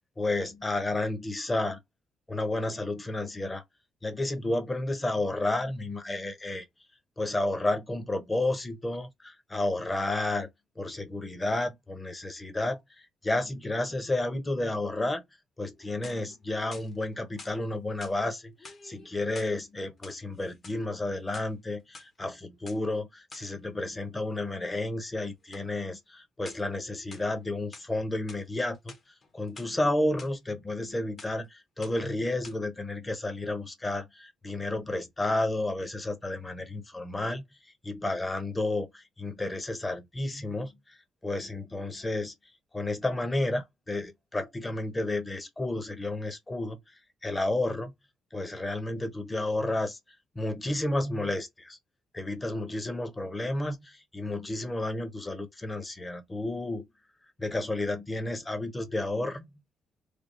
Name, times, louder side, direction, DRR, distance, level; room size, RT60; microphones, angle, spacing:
voice 1, 0.2-1.8 2.3-3.6 4.0-6.7 7.2-10.5 10.8-15.2 15.6-29.0 29.3-37.4 37.8-41.0 41.2-42.3 42.7-46.8 47.2-47.9 48.3-50.0 50.3-51.8 52.1-56.9 57.4-59.4, left 2 dB, 20° left, 0.9 m, -31 dB
sound 1, 15.8-16.4 16.7-17.6 18.0-18.2 18.6-19.6 19.9-20.8 21.2-22.1 22.7-22.8 23.3-23.5 25.5-25.7 26.4-26.7 27.1-27.9 28.3-28.5 28.7-29.7 30.2-30.3 30.7-30.9 31.2-31.5 31.8-32.1 32.4-32.6, left 3 dB, 45° left, 1.1 m, -49 dB
3.5 x 2.3 x 3.8 m
cardioid pair, 90°, 0 cm